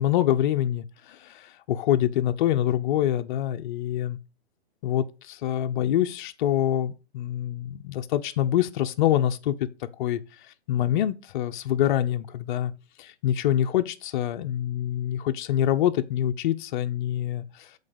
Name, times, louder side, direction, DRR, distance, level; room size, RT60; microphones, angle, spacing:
voice 1, 0.0-4.2 4.8-9.6 10.0-10.2 10.7-12.7 13.0-17.7, left 11 dB, 50° left, 0.6 m, -25 dB
7.6 x 4.0 x 5.0 m
hypercardioid pair, 150°, 32 cm